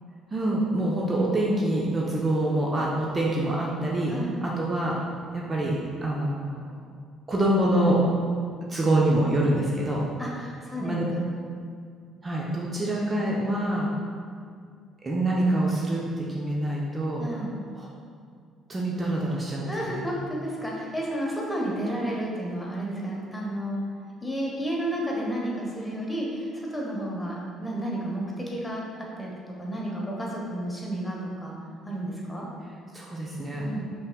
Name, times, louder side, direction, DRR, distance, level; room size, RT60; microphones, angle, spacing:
voice 1, 0.3-4.1 4.4-5.0 5.3-6.7 7.3-8.0 8.7-10.0 10.8-11.0 12.2-13.9 15.0-17.2 17.7-17.9 18.7-20.0 32.9-33.6, right 1 dB, 30° right, -4 dB, 0.6 m, -25 dB
voice 2, 10.2-11.2 17.2-17.5 19.7-23.8 24.2-29.3 29.6-31.5 31.8-32.5 33.6-33.8, right 1 dB, 10° left, -3 dB, 1.1 m, -31 dB
5.3 x 3.6 x 2.2 m, 2.2 s
figure-of-eight pair, 50°, 0 cm